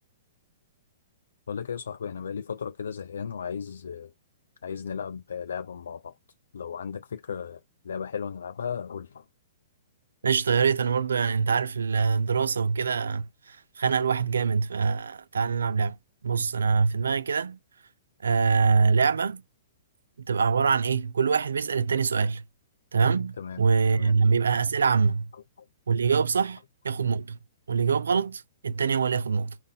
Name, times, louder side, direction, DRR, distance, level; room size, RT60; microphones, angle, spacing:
voice 1, 1.5-4.1 4.6-6.1 6.5-9.2 23.4-23.6 23.9-24.1 25.6-25.7, left 7 dB, 75° left, 0.3 m, -35 dB
voice 2, 10.2-16.0 16.2-17.6 18.2-19.4 20.2-22.4 22.9-25.3 25.9-27.4 27.7-29.6, right 5 dB, 80° right, 0.4 m, -24 dB
4.0 x 2.4 x 3.6 m
hypercardioid pair, 120°, 0 cm